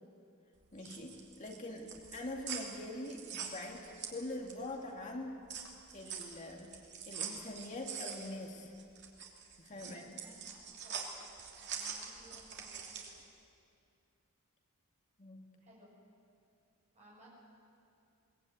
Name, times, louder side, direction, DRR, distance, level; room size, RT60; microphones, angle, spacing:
sound 1, 0.6-4.8 5.1-13.2, right 7 dB, 50° right, 2.9 m, -44 dB
voice 1, 0.7-5.4 5.9-6.7 7.1-8.7 9.6-10.2 15.2-15.5, left 1 dB, 35° left, 1 dB, 2.3 m, -44 dB
voice 2, 9.7-11.1 11.6-13.2 15.6-15.9 16.9-17.3, equal, 30° right, -5 dB, 6.9 m, -60 dB
22.5 x 19.0 x 9.3 m, 2.5 s
head